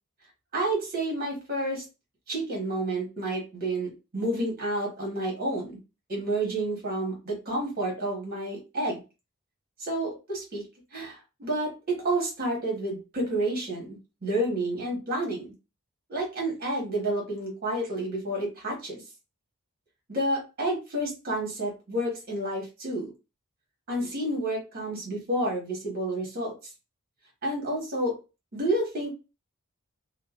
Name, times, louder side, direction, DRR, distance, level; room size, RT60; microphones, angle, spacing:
voice 1, 0.5-1.8 2.3-5.8 6.1-9.0 9.8-10.6 10.9-15.5 16.1-19.0 20.1-23.1 23.9-26.5 27.4-28.2 28.5-29.1, right 1 dB, 45° right, -2 dB, 1.3 m, -30 dB
2.7 x 2.1 x 2.4 m, 0.29 s
head